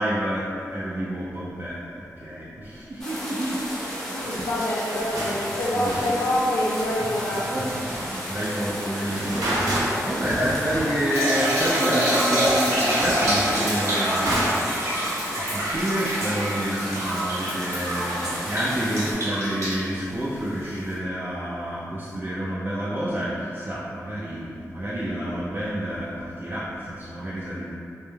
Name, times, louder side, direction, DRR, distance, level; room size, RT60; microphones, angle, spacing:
voice 1, 0.0-1.8 2.2-3.6 3.9-4.5 5.7-6.0 7.3-14.8 15.4-27.7, equal, 35° right, -9 dB, 0.4 m, -29 dB
sound 1, 3.0-19.1, equal, 10° left, 0.7 m, -34 dB
voice 2, 3.8-7.5, left 1 dB, 75° left, -9 dB, 0.3 m, -26 dB
sound 2, 4.9-5.5 5.8-6.9 9.0-11.1 11.4-11.5 12.2-12.3 12.4-14.8, right 1 dB, 85° right, 0.5 m, -29 dB
sound 3, 11.1-20.9, right 1 dB, 55° right, 0.8 m, -26 dB
2.2 x 2.1 x 3.1 m, 2.5 s
wide cardioid pair, 80°, 6 cm